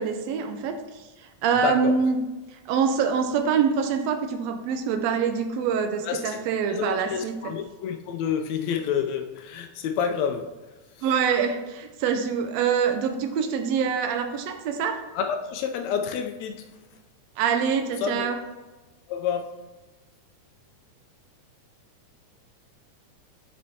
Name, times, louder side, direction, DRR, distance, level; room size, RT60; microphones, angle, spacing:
voice 1, 0.0-2.2 2.5-7.5 11.0-15.0 17.4-18.4, right 6 dB, 85° right, 6 dB, 1.5 m, -25 dB
voice 2, 1.6-1.9 6.0-6.4 6.7-10.5 15.1-16.7 18.0-18.3 19.1-19.5, left 7 dB, 85° left, 4 dB, 1.5 m, -29 dB
11.5 x 4.4 x 2.8 m, 1.2 s
omnidirectional pair, 3.7 m